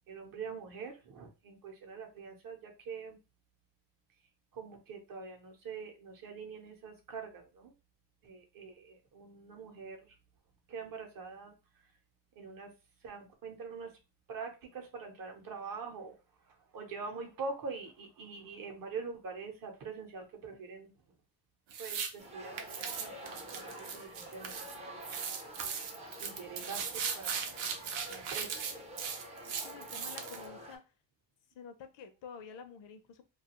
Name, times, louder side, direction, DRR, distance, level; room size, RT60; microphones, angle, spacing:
voice 1, 0.1-3.2 4.5-7.7 8.2-10.2 10.7-11.5 12.4-12.7 13.0-13.9 14.3-16.2 16.4-20.9 21.8-25.0 25.3-25.8 26.2-27.4 28.1-28.8, right 4 dB, 50° right, 3 dB, 0.7 m, -44 dB
sound 1, 21.7-22.1 22.6-24.8 25.0-30.4, right 6 dB, 90° right, 0.7 m, -38 dB
sound 2, 22.2-30.8, right 1 dB, 15° right, 0.4 m, -48 dB
voice 2, 29.5-30.8 31.5-33.3, left 6 dB, 70° left, 8 dB, 0.6 m, -49 dB
2.3 x 2.3 x 2.8 m, 0.29 s
cardioid pair, 160°, 45 cm